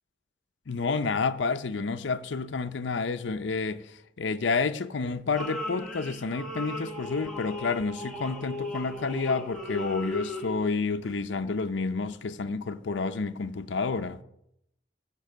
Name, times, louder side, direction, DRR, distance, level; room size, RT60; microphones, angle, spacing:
voice 1, 0.7-14.2, left 4 dB, 85° left, 0.6 m, -30 dB
sound 1, 5.3-10.7 11.0-11.1, left 1 dB, 5° left, 1.5 m, -37 dB
15.5 x 5.4 x 6.6 m
head